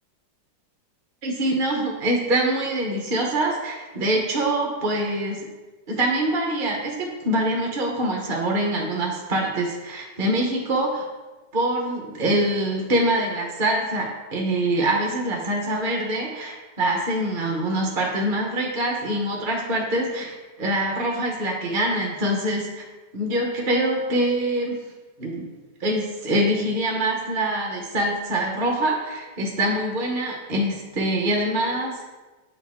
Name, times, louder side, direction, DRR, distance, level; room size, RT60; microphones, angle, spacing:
voice 1, 1.2-5.5 5.9-11.1 11.5-22.8 23.1-24.8 25.2-25.5 25.8-32.1, right 1 dB, 40° right, 0 dB, 0.8 m, -24 dB
8.6 x 4.7 x 3.5 m, 1.2 s
omnidirectional pair, 1.9 m